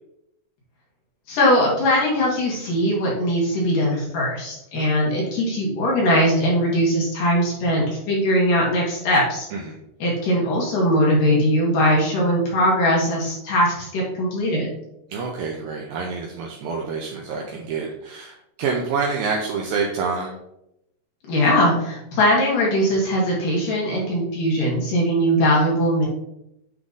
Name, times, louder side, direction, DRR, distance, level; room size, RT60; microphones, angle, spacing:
voice 1, 1.3-9.5 10.0-14.7 21.3-26.1, equal, 60° left, -4 dB, 3.3 m, -20 dB
voice 2, 15.1-20.4, right 5 dB, 80° right, 0 dB, 2.1 m, -27 dB
9.6 x 3.6 x 3.9 m, 0.82 s
omnidirectional pair, 4.9 m